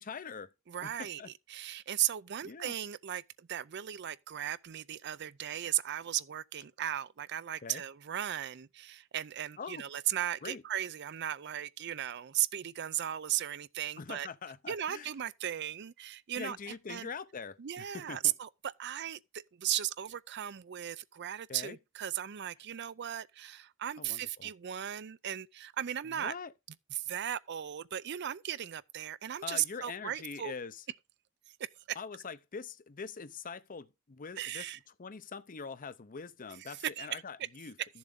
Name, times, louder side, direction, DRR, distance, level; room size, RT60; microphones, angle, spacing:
voice 1, 0.0-0.5 0.8-1.3 2.4-2.7 7.6-7.8 9.6-9.8 10.4-10.6 14.0-15.1 16.4-18.3 21.5-21.8 24.0-24.5 26.1-26.5 29.4-30.8 32.0-34.7 35.0-37.7, left 5 dB, 40° left, 0.6 m, -43 dB
voice 2, 0.7-14.3 14.7-17.1 17.6-26.3 26.9-30.5 31.6-32.0 34.4-34.8 36.6-37.2, right 11 dB, 55° right, 0.5 m, -36 dB
13.0 x 7.2 x 3.7 m
head